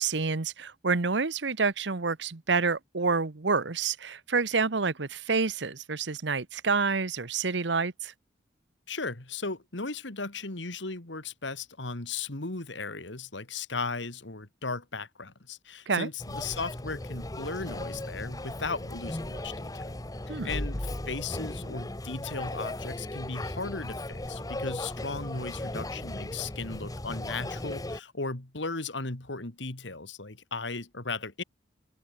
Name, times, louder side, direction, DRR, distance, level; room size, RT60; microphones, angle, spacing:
voice 1, 0.0-8.1 15.9-16.1 20.3-20.5, right 4 dB, 70° right, 1.1 m, -28 dB
voice 2, 8.9-20.0 20.3-31.4, left 3 dB, 75° left, 2.6 m, -36 dB
sound 1, 16.2-28.0, left 1 dB, 20° left, 1.1 m, -36 dB
open air
head